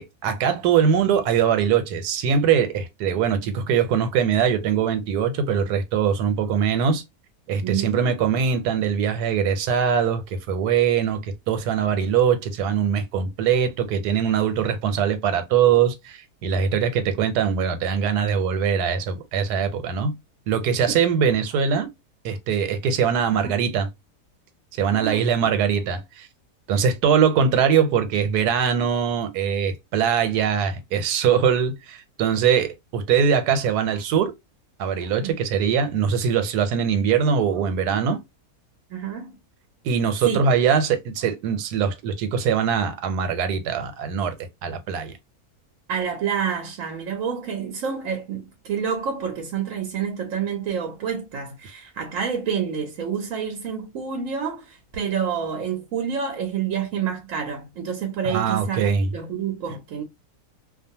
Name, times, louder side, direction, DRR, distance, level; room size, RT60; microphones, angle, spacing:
voice 1, 0.0-7.0 7.5-20.1 20.5-21.9 22.2-23.9 24.8-26.3 26.7-34.3 34.8-38.2 39.8-44.3 44.6-45.1 58.2-59.1, right 7 dB, 90° right, 1.2 m, -22 dB
voice 2, 7.6-8.0 20.9-21.0 23.3-23.5 24.9-25.3 35.2-35.3 38.9-39.4 40.3-40.5 45.9-60.0, right 7 dB, 65° right, 1.0 m, -28 dB
2.5 x 2.3 x 2.7 m
omnidirectional pair, 1.6 m